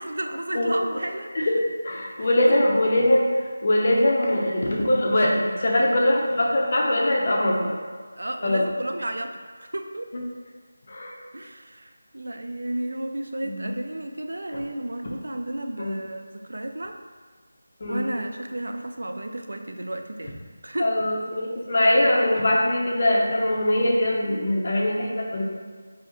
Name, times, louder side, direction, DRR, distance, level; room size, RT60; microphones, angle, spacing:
voice 1, 0.0-1.3 2.2-2.6 8.2-10.1 11.3-17.0 17.8-20.9, right 1 dB, 80° right, 5 dB, 0.3 m, -33 dB
voice 2, 1.3-3.2 3.6-7.7 8.4-8.7 10.1-10.2 10.9-11.1 13.4-13.8 14.5-14.6 15.0-15.1 15.8-16.0 17.8-18.2 20.8-25.4, left 1 dB, 40° left, -2 dB, 0.5 m, -22 dB
2.8 x 2.4 x 4.1 m, 1.5 s
figure-of-eight pair, 175°, 0 cm